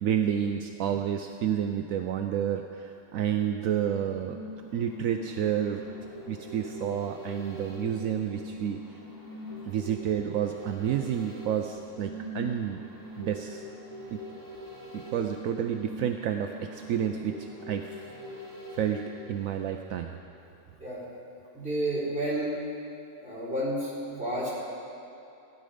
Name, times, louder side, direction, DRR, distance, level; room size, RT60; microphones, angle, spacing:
voice 1, 0.0-4.4 4.7-5.8 6.3-8.8 9.7-12.8 13.2-13.6 14.1-14.2 14.9-18.5 18.7-20.2, right 9 dB, 75° right, 5 dB, 1.0 m, -30 dB
sound 1, 4.0-20.2 20.5-20.6, equal, 15° left, 2.0 m, -42 dB
voice 2, 21.5-22.6 23.2-24.6, right 1 dB, 5° right, -9 dB, 3.6 m, -31 dB
16.0 x 10.5 x 5.0 m, 2.8 s
omnidirectional pair, 1.5 m